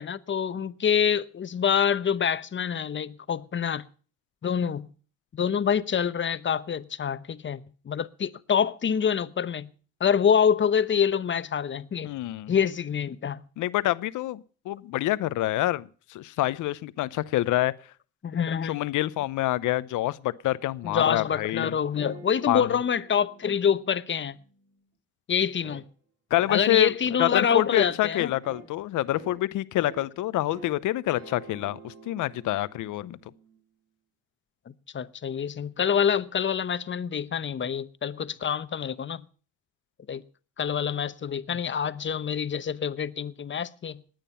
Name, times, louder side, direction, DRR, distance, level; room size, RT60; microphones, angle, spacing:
voice 1, 0.0-3.9 4.4-4.9 5.3-7.6 7.9-9.7 10.0-12.2 12.5-13.5 18.2-18.8 20.8-24.4 25.3-25.8 26.5-28.3 34.9-39.2 40.1-40.2 40.6-44.0, left 7 dB, 40° left, 1.0 m, -26 dB
voice 2, 12.0-12.5 13.6-17.7 18.7-21.7 22.5-22.7 26.3-26.9 27.2-33.2, left 15 dB, 85° left, 0.8 m, -27 dB
sound 1, 20.8-24.8 25.6-25.8 26.3-26.6 27.0-27.3 27.7-28.0 28.4-28.7 29.2-29.4 29.8-30.1 30.5-30.8 31.2-33.6, right 4 dB, 55° right, 3.9 m, -48 dB
19.5 x 9.1 x 5.6 m
cardioid pair, 90°, 30 cm